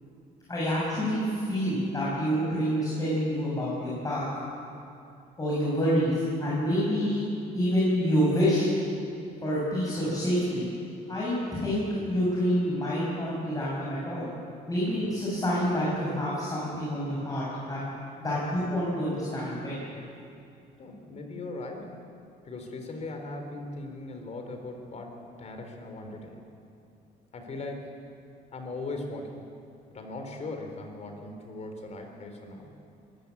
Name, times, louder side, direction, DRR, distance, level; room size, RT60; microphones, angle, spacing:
voice 1, 0.5-4.2 5.4-7.2 7.5-8.7 9.4-10.6 11.1-14.3 14.7-17.8 18.2-19.9, equal, 20° left, -7 dB, 7.2 m, -27 dB
voice 2, 20.8-22.0 22.4-26.4 27.3-27.9 28.5-29.4 29.9-32.7, left 2 dB, 40° left, 4 dB, 3.9 m, -39 dB
23.0 x 14.5 x 8.6 m, 2.6 s
cardioid pair, 110°, 17 cm